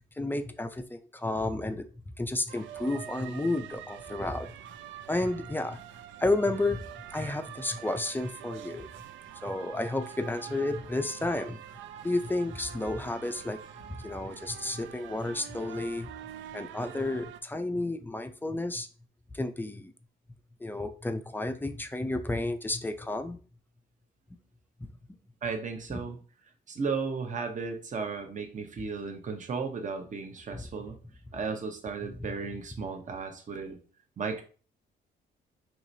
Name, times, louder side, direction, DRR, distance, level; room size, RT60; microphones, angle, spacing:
voice 1, 0.2-1.8 2.2-4.6 5.1-5.8 6.2-6.8 7.1-8.9 9.4-11.6 12.0-13.6 13.9-16.1 16.5-18.9 19.3-19.9 20.6-23.4 24.8-24.9 25.9-26.0 30.5-30.6 32.1-32.6, left 2 dB, 10° left, 8 dB, 0.4 m, -31 dB
sound 1, 2.5-17.4, right 10 dB, 70° right, 0.4 m, -45 dB
voice 2, 25.4-26.2 26.7-31.0 31.3-33.8 34.2-34.4, right 5 dB, 40° right, 5 dB, 0.9 m, -35 dB
4.8 x 3.0 x 2.7 m, 0.38 s
cardioid pair, 90°, 20 cm